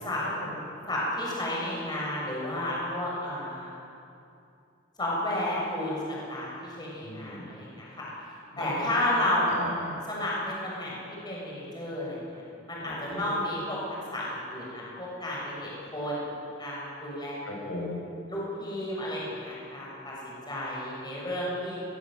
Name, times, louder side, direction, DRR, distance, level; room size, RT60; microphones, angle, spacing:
voice 1, 0.9-3.7 5.0-8.0 8.6-9.6 10.0-10.9 11.2-12.4 12.7-13.8 14.1-16.3 16.6-17.3 18.3-21.8, left 1 dB, 20° left, -5 dB, 6.9 m, -32 dB
voice 2, 7.0-7.6 8.5-8.9 9.5-10.0 12.8-13.4 17.4-18.0, left 1 dB, 80° left, -2 dB, 7.7 m, -38 dB
22.5 x 20.5 x 7.9 m, 2.6 s
head